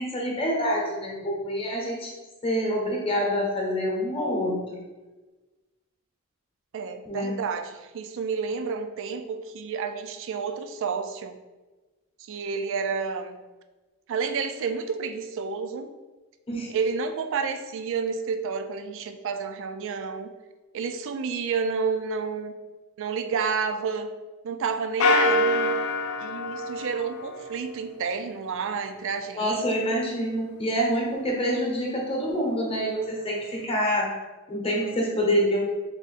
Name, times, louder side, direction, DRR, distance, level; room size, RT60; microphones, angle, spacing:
voice 1, 0.0-2.1 2.4-4.6 7.1-7.4 16.5-16.7 29.4-34.1 34.5-35.6, equal, 25° left, -2 dB, 0.9 m, -26 dB
voice 2, 6.7-11.4 12.3-13.4 14.1-15.9 16.7-20.3 20.7-22.6 23.0-24.1 24.4-25.8 26.2-29.6, right 5 dB, 60° right, 8 dB, 0.4 m, -30 dB
sound 1, 25.0-27.7, left 2 dB, 75° left, 0.4 m, -25 dB
3.5 x 2.6 x 4.0 m, 1.2 s
head